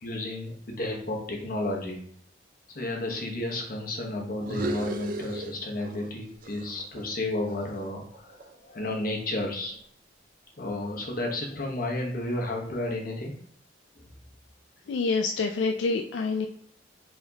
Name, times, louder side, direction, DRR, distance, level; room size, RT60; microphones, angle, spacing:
voice 1, 0.0-2.0 2.7-9.8 10.6-13.4 14.0-14.1, left 1 dB, 50° left, 0 dB, 1.0 m, -32 dB
sound 1, 4.4-6.1 6.4-8.7, right 2 dB, 50° right, 0.4 m, -37 dB
voice 2, 14.9-16.5, left 4 dB, 80° left, 4 dB, 0.3 m, -27 dB
4.6 x 3.5 x 2.7 m, 0.65 s
head